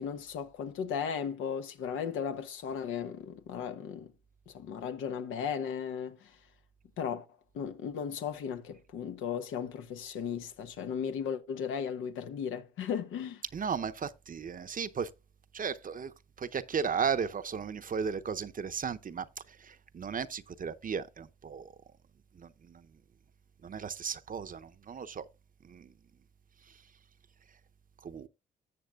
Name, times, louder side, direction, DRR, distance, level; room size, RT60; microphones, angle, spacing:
voice 1, 0.0-4.1 4.5-6.4 7.0-7.3 7.5-13.4, left 7 dB, 85° left, 1.0 m, -36 dB
voice 2, 13.5-15.1 15.5-16.1 16.4-21.7 22.3-22.9 23.6-25.3 25.6-25.9 28.0-28.3, right 6 dB, 45° right, 0.7 m, -35 dB
13.5 x 7.5 x 2.4 m
supercardioid pair, 60°, 20 cm